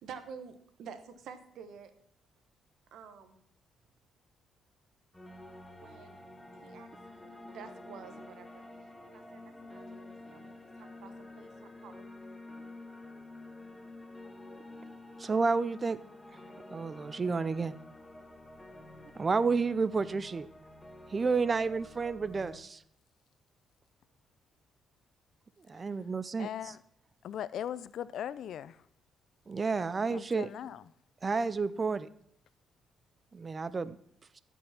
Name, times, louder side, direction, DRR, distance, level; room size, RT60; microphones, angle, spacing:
voice 1, 0.0-1.9 2.9-3.4 5.7-6.2 6.5-6.9 7.2-8.6 9.0-12.1, right 6 dB, 75° right, 1.3 m, -50 dB
sound 1, 5.1-22.6, left 2 dB, 10° left, 1.4 m, -49 dB
voice 2, 15.2-16.0 16.7-17.7 19.2-20.5 21.1-22.8 25.7-26.5 29.5-30.5 31.2-32.1 33.3-34.0, right 4 dB, 35° right, 0.5 m, -30 dB
voice 3, 26.4-26.8 27.2-28.8 30.1-30.8, left 10 dB, 70° left, 0.4 m, -39 dB
13.5 x 5.5 x 5.8 m
cardioid pair, 90°, 0 cm